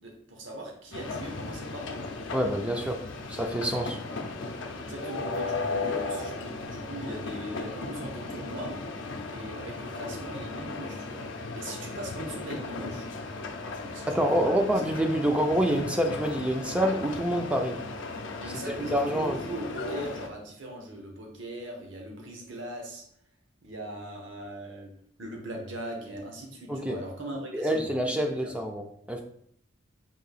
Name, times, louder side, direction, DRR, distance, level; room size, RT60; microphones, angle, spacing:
voice 1, 0.0-2.1 4.8-8.8 9.3-13.0 13.8-14.5 18.4-23.0 23.6-24.9 25.2-28.5, right 1 dB, 75° right, 1 dB, 0.9 m, -40 dB
sound 1, 0.9-20.3, left 3 dB, 75° left, 0.5 m, -36 dB
voice 2, 2.3-3.0 3.3-4.0 14.1-17.8 18.8-19.4 26.7-27.0 27.5-29.2, equal, 5° right, 3 dB, 0.3 m, -27 dB
3.7 x 2.6 x 4.1 m, 0.65 s
head